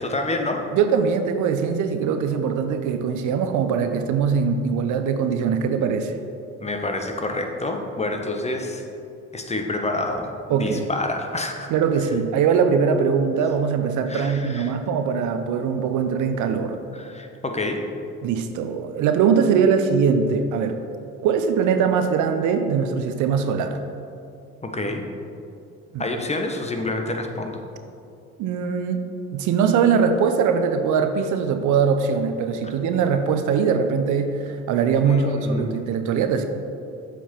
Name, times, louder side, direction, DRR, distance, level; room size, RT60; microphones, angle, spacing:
voice 1, 0.0-0.6 6.6-8.8 9.3-11.7 14.1-14.7 16.9-17.8 24.6-25.1 26.0-27.6 35.0-35.9, left 2 dB, 20° left, 4 dB, 1.0 m, -28 dB
voice 2, 0.7-6.1 10.5-10.9 11.7-16.8 18.2-20.8 21.2-23.8 25.9-26.0 28.4-29.0 29.3-36.5, right 6 dB, 60° right, 8 dB, 0.6 m, -21 dB
7.4 x 5.2 x 4.4 m, 2.5 s
hypercardioid pair, 60°, 34 cm